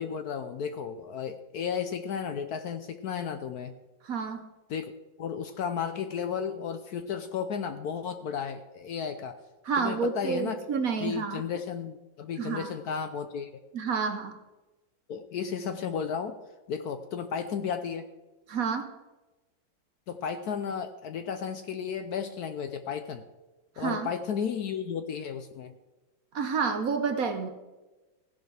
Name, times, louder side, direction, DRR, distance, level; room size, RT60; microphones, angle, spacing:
voice 1, 0.0-3.7 4.7-4.9 5.2-9.4 9.8-10.6 11.0-13.5 15.1-16.3 16.7-18.1 20.1-23.2 23.8-25.7, left 7 dB, 65° left, 9 dB, 1.0 m, -33 dB
voice 2, 4.0-4.4 9.6-11.4 12.4-12.7 13.7-14.4 18.5-18.9 23.8-24.1 26.3-27.5, right 5 dB, 55° right, 7 dB, 1.1 m, -29 dB
15.5 x 11.0 x 3.3 m, 1.1 s
omnidirectional pair, 2.1 m